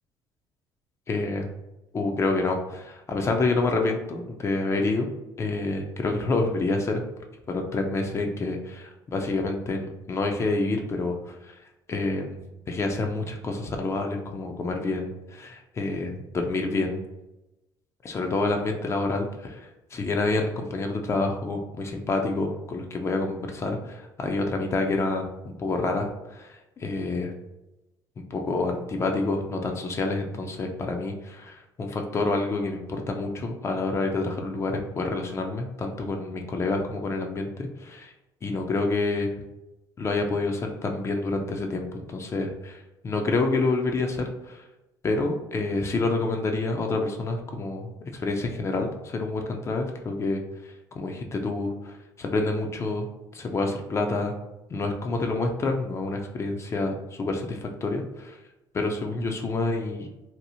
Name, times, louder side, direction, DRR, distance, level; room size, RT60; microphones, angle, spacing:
voice 1, 1.1-1.5 1.9-5.1 5.4-7.0 7.5-11.6 11.9-12.4 12.7-17.0 18.0-27.3 28.3-38.1 38.4-39.3 40.0-44.6 45.0-53.1 53.3-54.3 54.7-58.4 58.7-60.1, left 3 dB, 30° left, 3 dB, 0.4 m, -28 dB
2.7 x 2.0 x 2.6 m, 0.96 s
cardioid pair, 95°, 9 cm